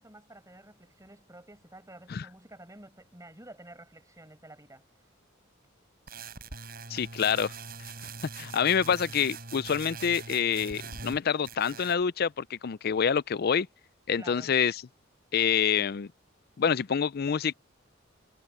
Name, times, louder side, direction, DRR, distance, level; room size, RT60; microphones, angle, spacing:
voice 1, 0.0-4.9 14.2-14.5, right 1 dB, 15° right, 5.5 m, -50 dB
sound 1, 6.1-11.2 11.4-12.0, right 4 dB, 50° right, 6.2 m, -42 dB
voice 2, 6.9-7.5 8.4-13.7 14.1-14.8 15.3-16.1 16.6-17.5, left 7 dB, 50° left, 0.4 m, -27 dB
head